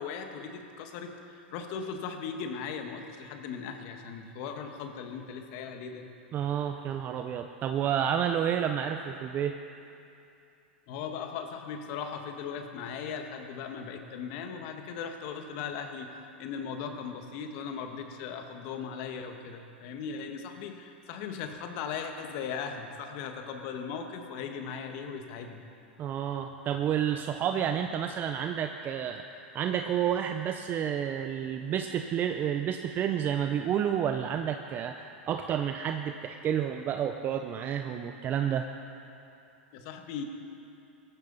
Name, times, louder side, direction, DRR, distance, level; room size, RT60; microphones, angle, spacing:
voice 1, 0.0-6.1 10.9-16.1 16.4-25.6 39.7-40.2, left 6 dB, 55° left, 5 dB, 1.6 m, -38 dB
voice 2, 6.3-9.6 26.0-29.2 29.5-38.7, right 9 dB, 35° right, 6 dB, 0.7 m, -30 dB
17.5 x 14.5 x 4.1 m, 2.7 s
hypercardioid pair, 105°, 6 cm